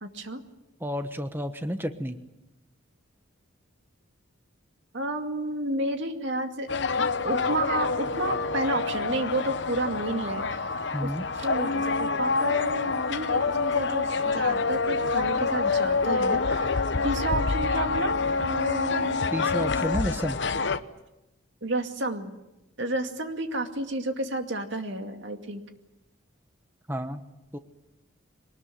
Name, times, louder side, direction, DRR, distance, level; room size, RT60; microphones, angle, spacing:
voice 1, 0.0-0.4 4.9-10.7 11.0-19.2 21.6-22.3 22.8-25.6, right 2 dB, 60° right, 5 dB, 2.3 m, -31 dB
voice 2, 0.8-2.2 10.9-11.3 19.3-20.4 26.9-27.2 27.5-27.6, equal, 10° right, 8 dB, 1.1 m, -30 dB
sound 1, 6.7-20.8, left 4 dB, 60° left, 0.9 m, -27 dB
23.0 x 19.5 x 9.2 m, 0.95 s
head